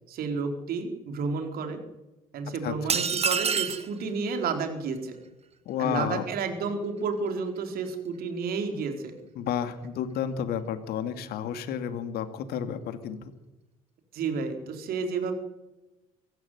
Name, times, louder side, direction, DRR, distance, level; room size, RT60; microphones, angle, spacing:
voice 1, 0.1-1.8 2.3-5.2 5.8-9.1 14.1-15.3, right 5 dB, 55° right, 5 dB, 4.4 m, -31 dB
voice 2, 2.6-3.0 5.7-6.2 9.4-13.3, left 8 dB, 60° left, 9 dB, 2.5 m, -31 dB
sound 1, 2.9-3.9, right 6 dB, 35° right, 2.1 m, -26 dB
24.5 x 14.0 x 9.4 m, 1.0 s
hypercardioid pair, 55°, 18 cm